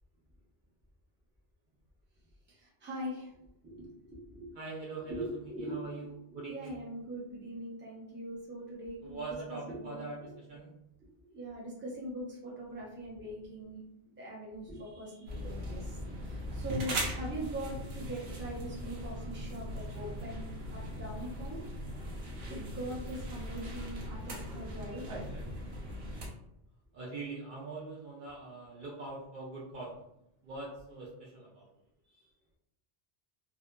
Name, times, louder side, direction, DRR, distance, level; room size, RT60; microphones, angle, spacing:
voice 1, 2.5-3.3 3.6-4.6 5.1-9.2 9.7-10.3 11.3-13.8 14.2-21.6 22.5-25.1 32.1-32.3, right 1 dB, 15° right, -5 dB, 0.6 m, -42 dB
voice 2, 4.5-6.9 9.0-10.7 26.9-30.0 30.4-31.7, right 3 dB, 60° right, -4 dB, 0.6 m, -43 dB
sound 1, 15.3-26.3, equal, 80° right, 0.9 m, -39 dB
2.6 x 2.4 x 2.2 m, 0.81 s
omnidirectional pair, 1.0 m